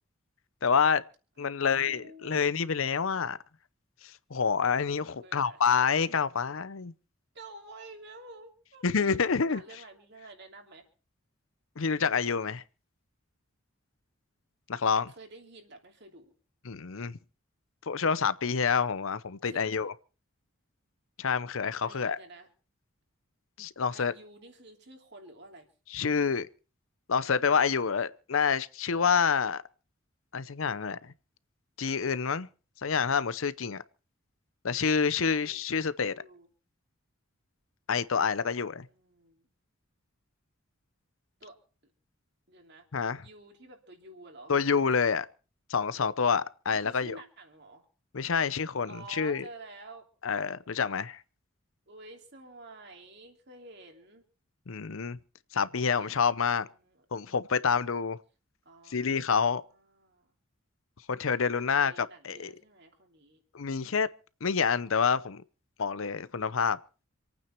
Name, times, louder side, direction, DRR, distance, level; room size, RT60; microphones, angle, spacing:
voice 1, 0.6-1.0 1.4-3.4 4.0-6.9 8.8-9.6 11.8-12.6 14.7-15.1 16.6-17.2 17.9-19.9 21.2-22.2 23.6-24.1 25.9-26.5 27.1-29.6 30.3-31.1 31.8-32.5 32.8-33.8 34.6-36.1 37.9-38.9 42.9-43.2 44.5-45.3 45.7-47.2 48.1-49.4 50.2-51.2 54.7-55.2 55.5-56.7 57.1-58.2 58.9-59.6 61.1-62.5 63.5-64.1 64.4-65.4 65.8-66.8, left 6 dB, 70° left, 0.7 m, -28 dB
voice 2, 1.4-2.5 5.2-5.6 7.3-9.2 9.5-10.8 15.2-16.3 19.4-19.8 21.8-22.5 23.9-25.7 35.2-35.6 36.1-36.5 38.1-39.5 41.4-41.6 42.5-42.9 43.2-44.5 46.7-47.8 48.9-50.0 51.9-54.2 55.7-56.3 56.6-57.0 58.6-60.3 61.5-63.4, right 2 dB, 55° right, 3.0 m, -50 dB
27.0 x 9.2 x 4.4 m
head